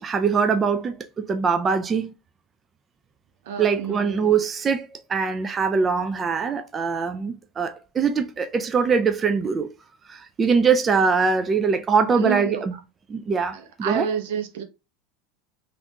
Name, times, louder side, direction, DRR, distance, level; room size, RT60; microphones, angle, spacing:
voice 1, 0.0-2.1 3.6-9.7 10.1-12.7 13.1-14.1, right 5 dB, 25° right, 0.4 m, -22 dB
voice 2, 3.4-4.4 12.2-12.8 13.5-14.6, right 7 dB, 75° right, 0.8 m, -30 dB
3.4 x 2.5 x 2.7 m
supercardioid pair, 115°, 0 cm